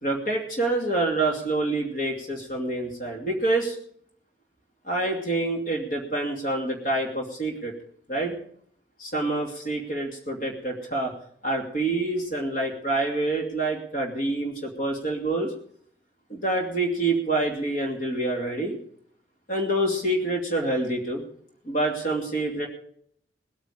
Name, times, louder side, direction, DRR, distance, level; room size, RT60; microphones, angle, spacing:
voice 1, 0.0-3.8 4.9-7.7 8.1-8.4 9.0-11.1 11.4-15.5 16.3-18.8 19.5-21.2 21.6-22.7, right 2 dB, 50° left, 0 dB, 2.6 m, -27 dB
20.0 x 9.2 x 5.1 m, 0.63 s
head